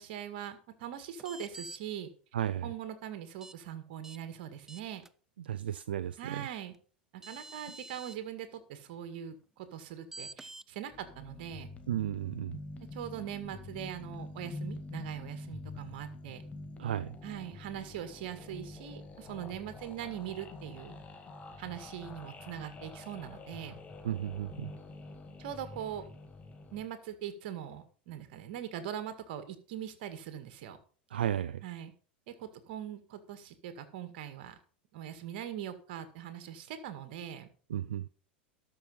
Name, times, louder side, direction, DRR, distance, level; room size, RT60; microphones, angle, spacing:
voice 1, 0.0-2.1 2.6-5.0 6.2-6.7 7.1-11.7 12.9-16.4 17.2-21.0 21.6-23.8 25.4-26.1 26.7-30.8 31.6-31.9 32.3-34.6 34.9-37.5, right 10 dB, 60° right, 10 dB, 1.9 m, -41 dB
sound 1, 1.2-1.8 3.4-3.5 4.0-4.2 4.7-5.1 6.7-6.8 7.2-8.2 10.1-10.7, right 2 dB, 10° right, 0.5 m, -47 dB
voice 2, 2.3-2.7 5.5-6.5 11.9-12.6 16.8-17.2 24.0-24.7 31.1-31.6 37.7-38.1, right 11 dB, 80° right, 16 dB, 0.4 m, -34 dB
sound 2, 10.9-26.8, left 2 dB, 25° left, 2.0 m, -46 dB
12.5 x 6.2 x 5.4 m, 0.39 s
hypercardioid pair, 85°, 6 cm